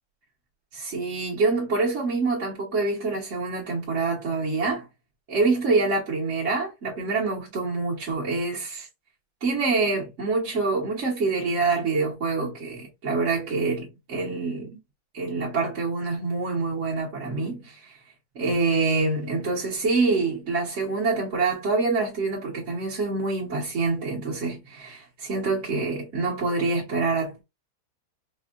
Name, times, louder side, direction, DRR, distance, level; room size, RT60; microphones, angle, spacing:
voice 1, 0.7-4.9 5.3-8.9 9.4-14.7 15.1-17.8 18.3-27.4, right 3 dB, 50° right, 1.3 m, -26 dB
4.4 x 2.4 x 2.4 m
omnidirectional pair, 1.7 m